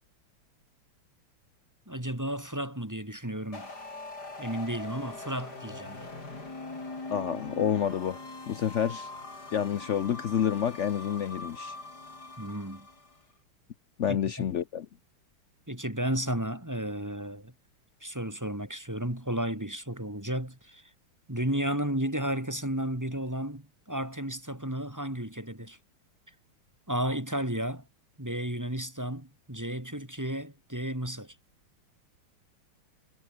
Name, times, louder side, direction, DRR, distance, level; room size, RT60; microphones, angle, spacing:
voice 1, 1.9-3.7 4.4-6.1 12.4-12.9 14.1-14.2 15.7-17.5 18.0-20.8 21.3-25.8 26.9-27.9 28.2-31.3, right 1 dB, 10° right, 2.5 m, -33 dB
sound 1, 3.5-13.2, left 2 dB, 45° left, 5.9 m, -42 dB
voice 2, 7.1-8.2 8.5-9.1 9.5-11.8 14.0-14.9, left 9 dB, 75° left, 0.6 m, -29 dB
omnidirectional pair, 2.4 m